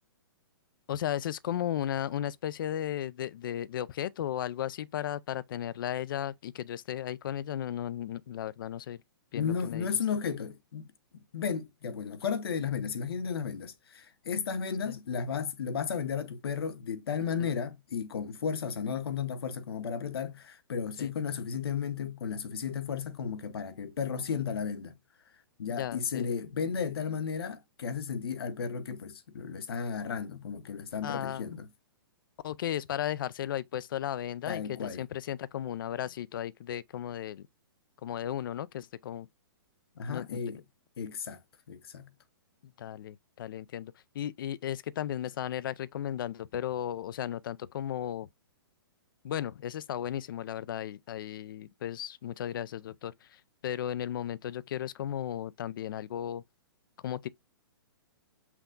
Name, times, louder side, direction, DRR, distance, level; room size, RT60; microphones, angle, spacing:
voice 1, 0.9-9.0 9.3-9.9 14.9-15.0 17.4-17.5 21.0-21.1 25.7-26.3 31.0-31.5 32.4-37.5 38.0-39.3 40.1-40.4 42.6-48.3 49.2-56.4 57.0-57.3, left 11 dB, 60° left, 0.4 m, -35 dB
voice 2, 9.3-10.9 11.1-24.9 25.6-31.7 34.5-35.0 40.0-40.6 41.0-41.4 41.7-42.1, left 6 dB, 75° left, 1.0 m, -34 dB
5.9 x 2.2 x 3.8 m
hypercardioid pair, 155°, 13 cm